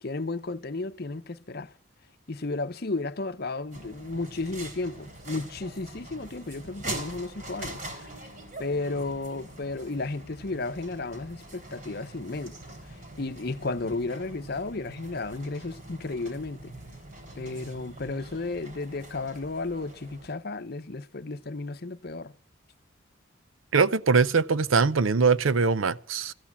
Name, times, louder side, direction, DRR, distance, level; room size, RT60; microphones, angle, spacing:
voice 1, 0.0-1.7 2.3-8.1 8.6-12.5 13.2-16.7 17.4-22.3, left 3 dB, 50° left, 0.8 m, -33 dB
sound 1, 3.7-20.3, right 1 dB, 45° right, 3.8 m, -43 dB
voice 2, 23.7-26.3, right 5 dB, 90° right, 0.7 m, -22 dB
14.5 x 8.6 x 8.5 m
head